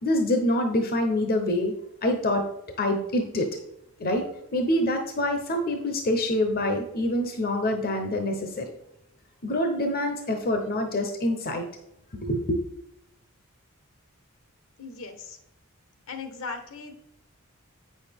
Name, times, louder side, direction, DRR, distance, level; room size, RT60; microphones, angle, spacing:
voice 1, 0.0-1.7 2.0-2.4 2.8-3.5 4.0-4.2 4.5-8.7 9.4-11.7 12.2-12.6, left 1 dB, 45° left, 5 dB, 0.8 m, -25 dB
voice 2, 14.8-15.4 16.1-16.9, left 4 dB, 65° left, 7 dB, 1.1 m, -38 dB
8.4 x 6.4 x 3.5 m, 0.78 s
head